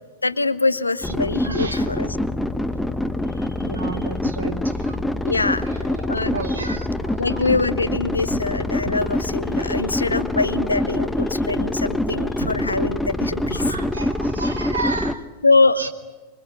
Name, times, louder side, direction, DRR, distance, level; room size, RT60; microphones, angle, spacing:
voice 1, 0.2-2.1 5.2-5.7 6.1-6.4 7.2-13.7 15.4-15.9, left 3 dB, 80° left, 14 dB, 0.9 m, -23 dB
sound 1, 1.0-15.2, left 1 dB, 5° left, 1.1 m, -25 dB
voice 2, 1.4-2.2 3.6-5.0 5.7-7.6 8.3-8.4 8.8-8.9 12.4-12.5 13.5-15.3 15.8-15.9, right 3 dB, 75° right, 6 dB, 2.2 m, -32 dB
25.5 x 22.5 x 9.6 m, 1.3 s
figure-of-eight pair, 90°, 0 cm